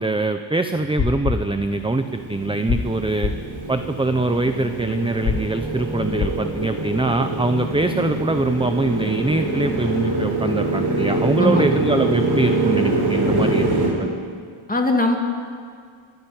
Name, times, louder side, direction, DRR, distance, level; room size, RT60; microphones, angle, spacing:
voice 1, 0.0-3.3 3.7-13.7, right 2 dB, 10° right, 8 dB, 0.8 m, -23 dB
sound 1, 0.8-2.2 2.5-2.9 3.2-3.4 5.2-5.5 6.1-6.4, left 6 dB, 65° left, 1.8 m, -26 dB
Motorcycle, 1.2-13.9, right 2 dB, 60° right, 5.6 m, -24 dB
voice 2, 11.4-11.8 14.7-15.2, left 1 dB, 15° left, 2 dB, 2.9 m, -20 dB
25.0 x 13.0 x 9.3 m, 2.1 s
wide cardioid pair, 100°, 48 cm